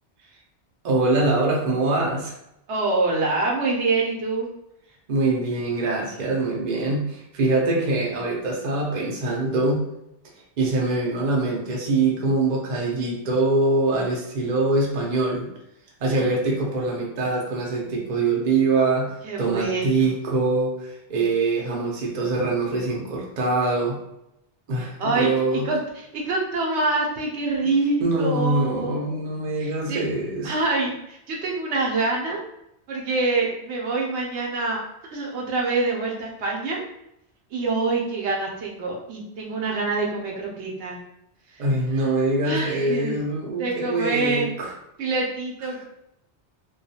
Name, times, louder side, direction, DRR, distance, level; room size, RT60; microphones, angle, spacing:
voice 1, 0.8-2.3 5.1-9.8 10.6-15.5 16.0-24.0 24.7-25.7 27.6-27.7 28.0-30.5 41.6-44.7, right 2 dB, 50° right, -2 dB, 0.6 m, -24 dB
voice 2, 2.7-4.5 16.1-16.3 19.2-20.1 24.8-29.2 29.6-30.0 30.4-32.4 32.9-34.8 35.1-36.8 37.5-41.0 41.5-41.6 42.4-43.2 43.6-44.5 45.0-45.8, right 3 dB, 75° right, -2 dB, 0.9 m, -26 dB
2.3 x 2.2 x 2.7 m, 0.82 s
omnidirectional pair, 1.2 m